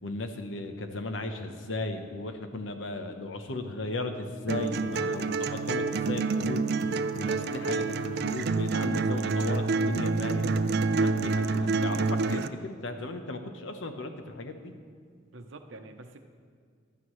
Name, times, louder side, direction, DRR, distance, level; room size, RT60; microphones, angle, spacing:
voice 1, 0.0-6.7 7.1-10.5 11.0-14.7, left 2 dB, 75° left, 6 dB, 0.9 m, -36 dB
sound 1, 4.5-12.5, right 4 dB, 55° right, 0.4 m, -28 dB
voice 2, 15.3-16.2, right 2 dB, 75° right, 7 dB, 0.8 m, -46 dB
16.0 x 11.5 x 3.2 m, 2.1 s
head